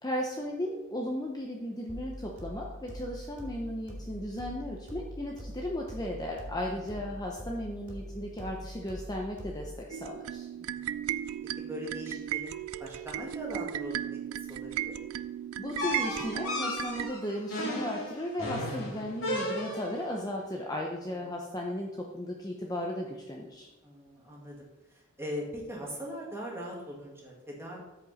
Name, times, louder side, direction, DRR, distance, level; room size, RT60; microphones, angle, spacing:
voice 1, 0.0-10.5 15.6-23.7, left 1 dB, 20° left, 0 dB, 0.7 m, -36 dB
sound 1, 1.9-9.9, equal, 40° right, 2.6 m, -43 dB
sound 2, 9.9-17.1, right 11 dB, 80° right, 0.4 m, -36 dB
voice 2, 10.5-11.1 11.6-12.5 12.8-15.0 21.2-21.3 23.8-27.8, equal, 10° right, -3 dB, 2.1 m, -41 dB
sound 3, 15.8-20.1, left 1 dB, 65° left, 3.3 m, -34 dB
13.0 x 5.3 x 4.2 m, 1.1 s
head